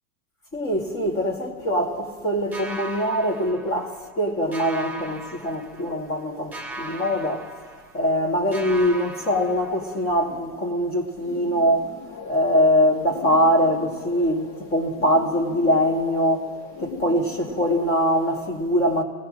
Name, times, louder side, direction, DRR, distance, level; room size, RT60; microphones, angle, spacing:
voice 1, 0.5-7.5 7.9-11.9 12.3-16.5 16.8-19.0, equal, 25° left, 1.5 m, -23 dB
sound 1, 2.5-4.2 4.5-6.2 6.5-8.2 8.5-10.2, right 1 dB, 5° right, 1.1 m, -38 dB
sound 2, 11.1-18.5, left 5 dB, 45° left, 1.5 m, -40 dB
22.5 x 17.5 x 2.5 m
hypercardioid pair, 115°, 47 cm